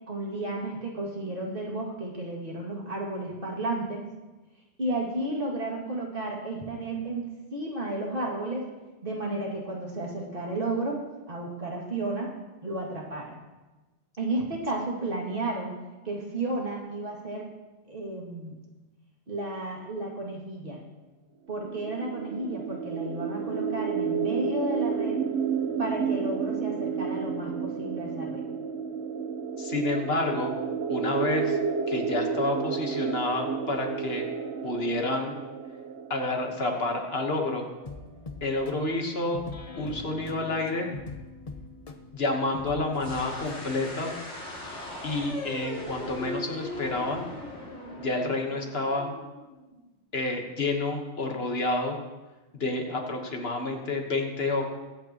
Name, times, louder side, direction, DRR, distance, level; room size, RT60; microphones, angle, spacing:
voice 1, 0.1-4.0 4.8-8.7 9.0-11.0 11.3-12.3 12.6-13.3 14.2-15.8 16.0-17.5 17.9-18.6 19.3-20.8 21.5-25.2 25.8-28.4, right 2 dB, 50° right, -3 dB, 2.5 m, -32 dB
sound 1, 21.6-37.3, right 6 dB, 70° right, 1.2 m, -31 dB
voice 2, 29.6-30.5 30.9-31.6 31.9-34.3 34.6-35.4 36.1-37.7 38.4-39.5 39.8-40.9 42.1-44.2 45.0-47.3 48.0-49.1 50.1-52.0 52.5-54.7, left 2 dB, 60° left, 2 dB, 1.5 m, -29 dB
sound 2, 37.8-44.0, left 3 dB, 35° left, 0.8 m, -42 dB
sound 3, 42.9-49.8, left 1 dB, 80° left, 2.8 m, -39 dB
22.0 x 8.7 x 3.0 m, 1.1 s
omnidirectional pair, 1.2 m